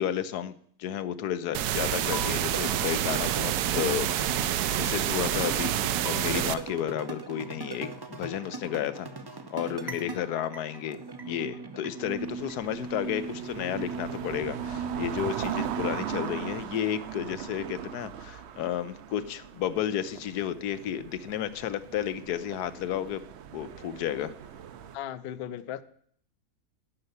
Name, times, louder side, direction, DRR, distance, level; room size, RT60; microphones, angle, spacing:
voice 1, 0.0-4.1 4.4-9.1 9.5-11.0 11.2-23.2 23.5-24.3, left 10 dB, 85° left, 13 dB, 1.3 m, -32 dB
sound 1, 1.5-6.5, right 11 dB, 85° right, 1.1 m, -28 dB
sound 2, 1.8-16.6, right 4 dB, 25° right, 0.5 m, -39 dB
voice 2, 9.8-10.2 24.9-25.8, left 10 dB, 65° left, 15 dB, 0.6 m, -37 dB
sound 3, 12.1-25.0, right 9 dB, 60° right, 0.7 m, -39 dB
11.5 x 5.4 x 8.1 m, 0.62 s
omnidirectional pair, 1.6 m